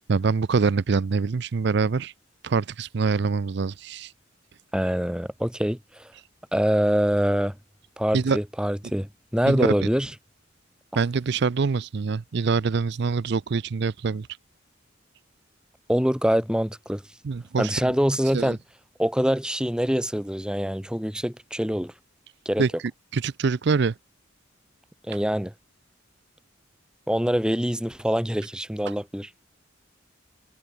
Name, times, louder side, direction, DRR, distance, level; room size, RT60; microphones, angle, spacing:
voice 1, 0.1-2.1 2.4-4.1 8.1-8.4 9.5-9.7 10.9-14.3 17.2-17.9 18.3-18.6 22.6-22.7 23.1-23.9 28.9-29.0, right 5 dB, 55° right, 0.4 m, -24 dB
voice 2, 4.7-5.8 6.5-7.5 8.0-10.1 15.9-17.0 17.6-18.6 19.0-21.9 22.4-22.6 25.1-25.5 27.1-29.3, equal, 5° right, 1.3 m, -24 dB
head